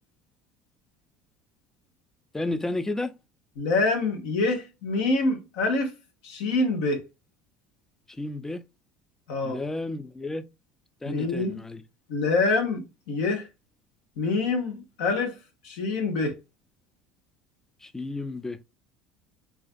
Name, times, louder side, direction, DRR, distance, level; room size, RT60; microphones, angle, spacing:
voice 1, 2.3-3.1 8.1-8.6 9.4-10.4 11.0-11.8 17.8-18.6, left 2 dB, 10° left, 0.3 m, -32 dB
voice 2, 3.6-5.9 6.2-7.0 9.3-9.6 11.1-11.6 12.1-13.5 14.2-15.3 15.6-16.3, left 3 dB, 75° left, 0.8 m, -26 dB
2.4 x 2.4 x 2.4 m
hypercardioid pair, 75°, 4 cm